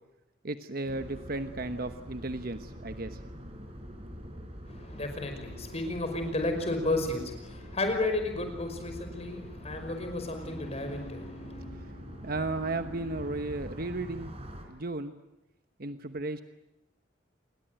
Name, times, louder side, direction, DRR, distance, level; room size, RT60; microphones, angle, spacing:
voice 1, 0.4-3.2 12.2-14.4 14.7-15.1 15.8-16.4, right 2 dB, 50° right, 9 dB, 1.1 m, -34 dB
sound 1, 0.8-14.7, equal, 30° right, 4.8 m, -44 dB
voice 2, 4.7-11.7, left 2 dB, 35° left, 6 dB, 5.5 m, -33 dB
sound 2, 10.4-14.2 14.5-14.6, equal, 20° left, 4.8 m, -50 dB
29.0 x 22.0 x 9.2 m, 0.91 s
head